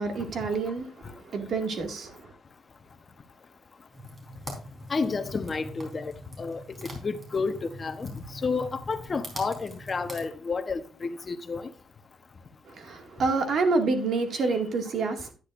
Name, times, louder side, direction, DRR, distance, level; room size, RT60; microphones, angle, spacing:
voice 1, 0.0-2.3 12.7-15.3, right 3 dB, 60° right, 2.0 m, -28 dB
sound 1, 3.9-10.3, equal, 35° right, 4.0 m, -43 dB
voice 2, 4.9-6.1 6.4-11.7, left 4 dB, 35° left, 0.9 m, -31 dB
10.5 x 9.9 x 2.5 m
cardioid pair, 90°, 0 cm